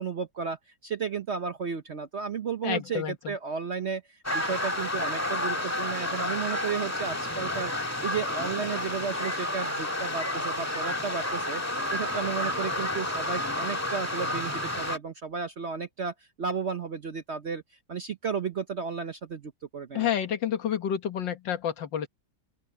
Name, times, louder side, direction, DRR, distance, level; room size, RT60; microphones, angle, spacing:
voice 1, 0.0-11.6 11.9-17.6 17.9-20.1, right 5 dB, 50° right, 0.9 m, -33 dB
voice 2, 2.6-3.3 19.9-22.1, left 9 dB, 75° left, 2.0 m, -29 dB
sound 1, 4.2-15.0, left 1 dB, 10° left, 1.8 m, -30 dB
open air
omnidirectional pair, 2.0 m